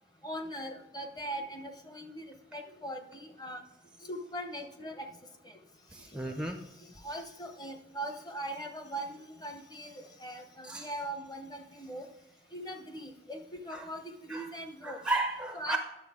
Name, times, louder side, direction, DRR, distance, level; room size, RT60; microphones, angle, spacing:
voice 1, 0.2-3.6 4.0-5.1 5.4-5.5 7.0-12.1 12.5-13.4 13.6-15.0 15.5-15.8, right 1 dB, 20° left, 5 dB, 0.8 m, -40 dB
voice 2, 5.9-6.6 7.1-7.2 10.6-10.9 13.7-13.9 14.3-14.6 14.8-15.8, right 2 dB, 5° right, 4 dB, 0.4 m, -34 dB
9.7 x 6.8 x 3.6 m, 0.93 s
head